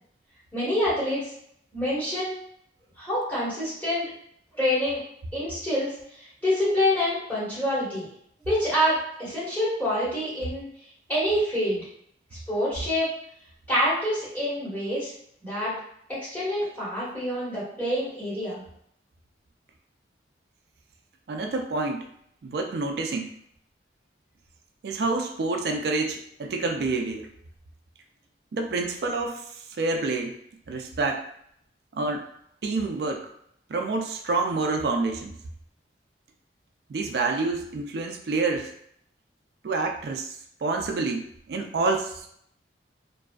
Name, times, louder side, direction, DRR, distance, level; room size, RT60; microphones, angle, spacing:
voice 1, 0.5-1.2 1.7-2.3 3.0-4.1 4.6-5.0 5.3-5.9 6.4-8.1 8.5-10.7 11.1-11.8 12.5-13.1 13.7-15.1 15.4-15.7 16.1-18.6, equal, 10° left, -10 dB, 1.3 m, -26 dB
voice 2, 21.3-22.1 22.4-23.3 24.8-27.3 28.5-29.4 29.8-30.4 30.7-31.3 31.9-32.2 32.6-33.3 33.7-35.4 36.9-38.7 39.6-40.4 40.6-42.3, right 3 dB, 60° right, 3 dB, 0.3 m, -28 dB
2.6 x 2.3 x 2.3 m, 0.68 s
head